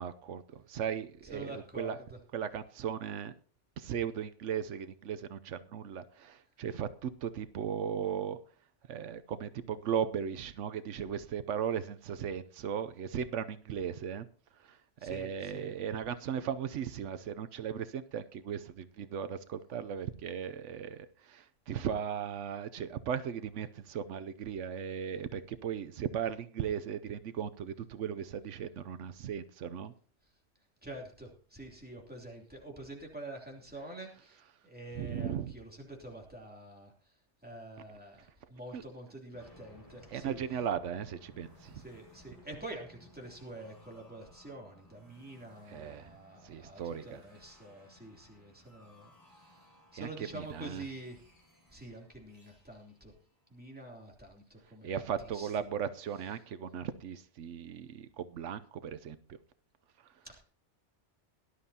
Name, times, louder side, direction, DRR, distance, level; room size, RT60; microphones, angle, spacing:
voice 1, 0.0-2.0 2.3-3.3 3.8-8.4 8.9-14.2 14.5-29.9 34.9-35.5 38.7-38.8 40.1-41.8 45.7-46.1 46.4-47.2 49.9-50.1 50.3-50.8 54.8-59.4 60.0-60.1, right 8 dB, 85° right, 12 dB, 1.0 m, -37 dB
voice 2, 1.3-2.2 15.0-15.7 30.8-37.1 37.4-40.4 41.7-51.3 51.7-53.1 53.5-54.9 55.2-55.7 60.2-60.4, right 1 dB, 10° right, -1 dB, 2.9 m, -47 dB
sound 1, 39.3-54.0, left 1 dB, 15° left, 6.0 m, -60 dB
18.5 x 11.5 x 2.8 m, 0.42 s
omnidirectional pair, 1.2 m